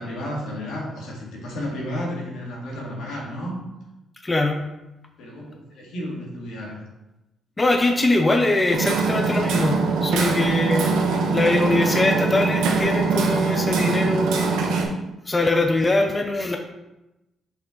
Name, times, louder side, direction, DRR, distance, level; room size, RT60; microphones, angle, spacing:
voice 1, 0.0-3.6 5.2-6.8 8.6-9.0, equal, 80° left, -3 dB, 2.2 m, -32 dB
voice 2, 4.2-4.6 7.6-10.9 11.3-14.5 15.3-16.6, left 2 dB, 20° left, 3 dB, 0.7 m, -22 dB
Hammer, 8.7-14.8, right 4 dB, 90° right, 1.1 m, -22 dB
6.0 x 4.9 x 3.9 m, 0.97 s
cardioid pair, 90°, 0 cm